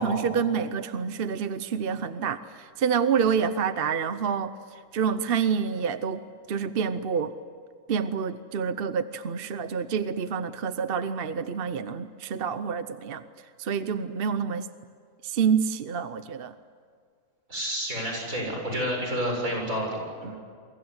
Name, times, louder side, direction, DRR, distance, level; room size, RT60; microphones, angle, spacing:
voice 1, 0.0-4.5 4.9-6.2 6.5-7.3 7.9-13.2 13.6-14.7 15.2-16.5 20.2-20.3, right 6 dB, 50° right, 12 dB, 0.9 m, -27 dB
voice 2, 17.5-20.4, equal, 80° right, 0 dB, 7.8 m, -30 dB
29.5 x 23.5 x 8.1 m, 2.1 s
omnidirectional pair, 1.4 m